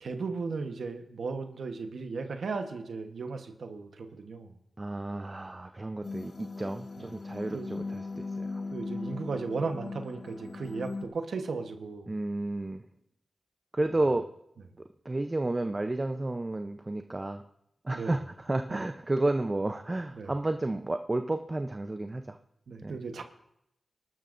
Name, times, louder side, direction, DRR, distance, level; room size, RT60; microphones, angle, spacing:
voice 1, 0.0-4.5 7.0-7.1 7.5-7.7 8.7-12.1 17.9-18.2 18.7-18.8 20.2-20.3 22.7-23.2, right 4 dB, 90° right, 6 dB, 1.1 m, -36 dB
voice 2, 4.8-8.6 12.1-12.8 13.7-14.3 15.0-17.4 17.8-22.4 22.8-23.0, right 2 dB, 30° right, 7 dB, 0.6 m, -31 dB
sound 1, 6.0-11.0, left 3 dB, 60° left, 0.9 m, -38 dB
25.0 x 12.5 x 2.6 m, 0.80 s
cardioid pair, 65°, 0 cm